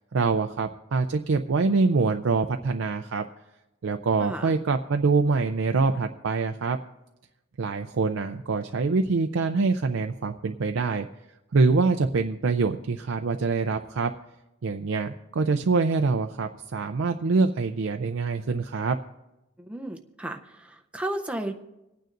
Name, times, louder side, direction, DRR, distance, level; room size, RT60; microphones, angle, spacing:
voice 1, 0.1-3.2 3.8-6.8 7.6-11.1 11.5-14.1 14.6-19.0, right 4 dB, 75° right, 5 dB, 0.5 m, -25 dB
voice 2, 4.2-4.6 19.6-21.5, right 1 dB, 5° right, 4 dB, 0.6 m, -34 dB
26.5 x 9.2 x 2.6 m, 0.97 s
head